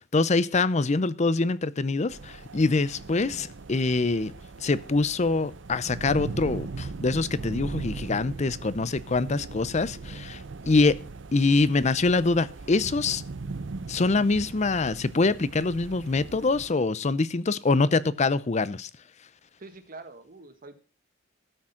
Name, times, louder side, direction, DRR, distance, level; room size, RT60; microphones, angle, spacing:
voice 1, 0.1-4.3 4.6-11.0 11.3-13.2 13.9-18.9, left 3 dB, 35° left, 0.6 m, -24 dB
sound 1, 2.1-16.7, right 3 dB, 70° right, 0.7 m, -39 dB
voice 2, 19.6-20.7, right 3 dB, 45° right, 1.6 m, -45 dB
13.0 x 6.2 x 5.7 m
head